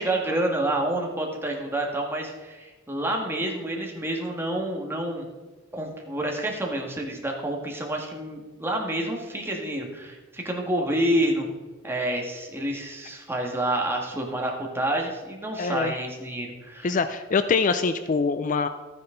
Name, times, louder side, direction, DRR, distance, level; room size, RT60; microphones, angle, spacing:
voice 1, 0.0-5.3 5.7-11.5 11.8-17.0, right 1 dB, 10° right, 0 dB, 1.8 m, -28 dB
voice 2, 15.6-16.0 16.8-18.7, left 4 dB, 40° left, 11 dB, 0.4 m, -24 dB
12.5 x 9.7 x 3.9 m, 1.3 s
head